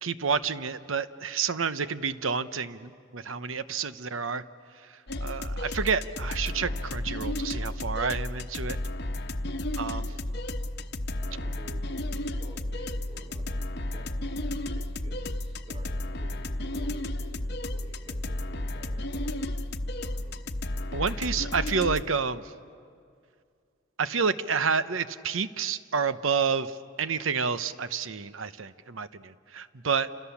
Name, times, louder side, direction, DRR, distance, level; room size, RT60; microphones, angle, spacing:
voice 1, 0.0-4.4 5.2-8.8 9.8-10.1 20.9-22.4 24.0-30.1, right 5 dB, 85° right, 13 dB, 0.9 m, -29 dB
sound 1, 5.1-22.0, left 1 dB, 55° left, 1.0 m, -33 dB
voice 2, 9.9-10.2 11.2-19.5 20.0-20.5, right 1 dB, 30° right, 1 dB, 2.8 m, -51 dB
29.5 x 27.0 x 7.2 m, 2.3 s
head